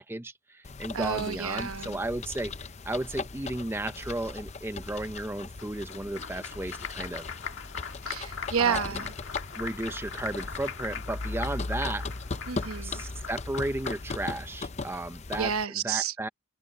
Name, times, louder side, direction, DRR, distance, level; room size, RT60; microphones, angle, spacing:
voice 1, 0.0-2.5 2.8-7.3 8.6-8.9 9.5-12.1 12.8-15.5 15.8-16.3, right 1 dB, 10° right, 0.5 m, -34 dB
sound 1, 0.6-15.6, left 3 dB, 30° left, 0.6 m, -38 dB
voice 2, 0.9-2.0 8.1-9.1 12.5-13.0 15.4-16.1, right 7 dB, 75° right, 1.0 m, -30 dB
Applause, 5.6-14.3, left 6 dB, 55° left, 2.0 m, -41 dB
head